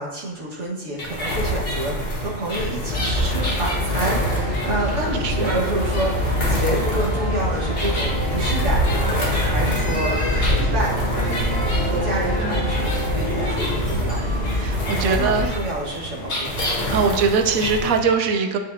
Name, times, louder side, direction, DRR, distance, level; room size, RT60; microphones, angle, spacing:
voice 1, 0.0-9.2 9.4-10.9 11.8-14.2 14.9-16.6, right 1 dB, 60° right, -4 dB, 1.8 m, -28 dB
sound 1, 1.0-18.0, equal, 45° left, 1.8 m, -28 dB
sound 2, 2.8-15.4, left 1 dB, 10° left, 2.4 m, -24 dB
sound 3, 3.5-13.6, right 1 dB, 25° right, 2.3 m, -34 dB
voice 2, 5.2-5.6 12.4-12.7 14.5-15.4 16.9-18.6, right 5 dB, 85° right, 6 dB, 1.1 m, -22 dB
12.0 x 4.7 x 2.7 m, 1.2 s
omnidirectional pair, 1.4 m